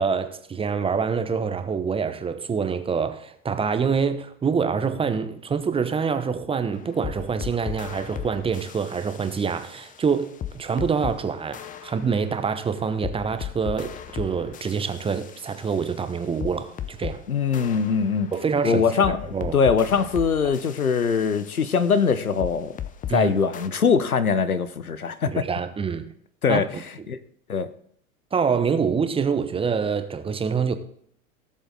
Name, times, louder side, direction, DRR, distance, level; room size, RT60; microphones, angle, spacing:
voice 1, 0.0-17.2 18.3-19.6 20.4-20.5 23.1-23.3 25.3-26.1 26.5-26.6 28.3-30.8, right 6 dB, 15° right, 0.9 m, -26 dB
sound 1, 6.8-11.2 11.5-17.2 17.5-23.2 23.5-23.7, left 10 dB, 20° left, 0.7 m, -37 dB
voice 2, 17.3-18.3 18.6-22.7 23.1-25.5 26.4-26.7 27.1-27.2 27.5-27.7, left 6 dB, 85° left, 1.0 m, -22 dB
17.5 x 7.4 x 3.8 m
figure-of-eight pair, 95°, 42 cm